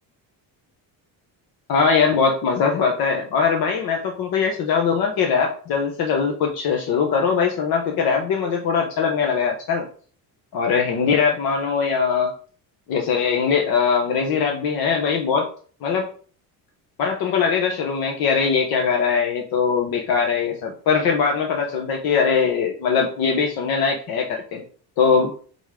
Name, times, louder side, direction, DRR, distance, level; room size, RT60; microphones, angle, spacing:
voice 1, 1.7-9.8 10.5-12.3 12.9-15.5 15.8-16.1 17.0-24.6 25.0-25.3, left 6 dB, 65° left, 2 dB, 1.3 m, -21 dB
8.5 x 4.1 x 3.7 m, 0.43 s
cardioid pair, 180°, 38 cm